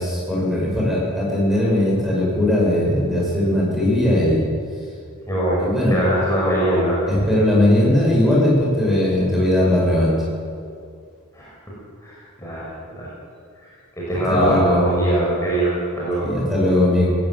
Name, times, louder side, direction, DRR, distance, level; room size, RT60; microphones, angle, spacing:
voice 1, 0.0-4.4 5.6-6.0 7.1-10.1 14.3-14.9 16.2-17.1, left 1 dB, ahead, -5 dB, 7.2 m, -19 dB
voice 2, 5.3-7.0 11.3-11.5 12.0-12.7 12.9-13.1 14.0-16.3, right 1 dB, 15° left, -7 dB, 5.7 m, -22 dB
18.0 x 15.5 x 9.5 m, 2.3 s
head